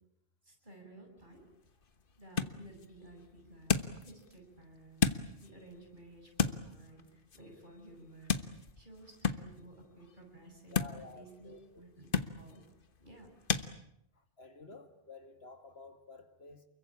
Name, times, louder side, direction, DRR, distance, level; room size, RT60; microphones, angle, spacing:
voice 1, 0.4-1.4 2.2-5.1 5.4-10.8 11.1-12.1 12.4-12.6 13.0-13.3, right 1 dB, 50° right, 7.4 m, -54 dB
sound 1, 1.2-13.7, left 6 dB, 55° left, 1.4 m, -37 dB
voice 2, 10.7-11.9 14.1-16.7, left 3 dB, 75° left, 2.5 m, -52 dB
29.0 x 22.5 x 8.7 m
omnidirectional pair, 1.1 m